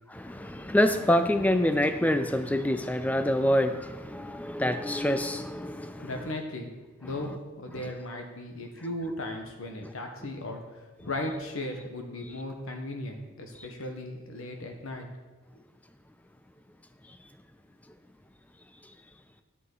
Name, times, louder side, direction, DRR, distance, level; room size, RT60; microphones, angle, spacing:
voice 1, 0.1-6.1, left 1 dB, 5° left, 9 dB, 0.4 m, -26 dB
voice 2, 6.0-6.7 7.0-15.1 15.5-15.6, left 1 dB, 70° left, 3 dB, 1.3 m, -37 dB
9.7 x 8.3 x 4.0 m, 1.2 s
head